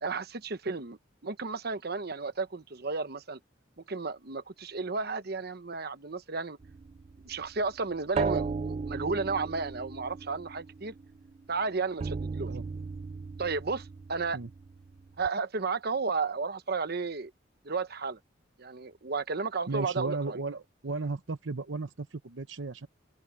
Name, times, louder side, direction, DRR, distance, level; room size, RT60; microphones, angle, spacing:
voice 1, 0.0-3.4 3.8-6.6 7.2-10.9 11.5-12.5 13.4-14.4 15.2-17.3 17.6-18.2 18.6-20.4, right 4 dB, 55° right, 1.1 m, -33 dB
sound 1, 6.6-11.4 12.0-15.3, right 4 dB, 35° right, 0.3 m, -36 dB
voice 2, 19.7-22.9, right 3 dB, 80° right, 0.9 m, -35 dB
open air
head